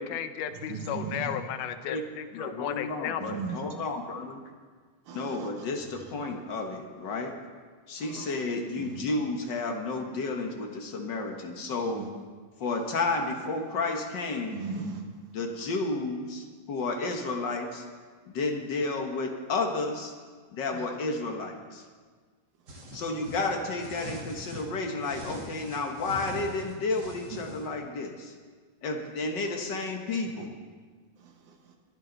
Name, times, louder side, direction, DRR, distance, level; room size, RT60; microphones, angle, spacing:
voice 1, 0.0-3.4, left 9 dB, 80° left, 9 dB, 2.4 m, -34 dB
voice 2, 0.5-1.4 3.2-3.6 5.1-5.7 8.0-8.4 8.8-9.0 11.8-12.1 14.5-15.0 15.6-15.7 20.7-20.9 27.3-27.5 30.4-30.5 31.2-31.8, right 4 dB, 70° right, 3 dB, 2.9 m, -38 dB
voice 3, 2.3-4.4 5.1-7.3 7.9-12.0 12.6-14.6 15.3-17.8 18.3-20.1 20.5-21.8 22.9-28.3 28.8-30.5, left 3 dB, 50° left, 3 dB, 1.4 m, -32 dB
sound 1, 22.7-24.7 25.0-27.7, equal, 35° right, 2.3 m, -42 dB
22.5 x 12.5 x 4.0 m, 1.5 s
omnidirectional pair, 3.6 m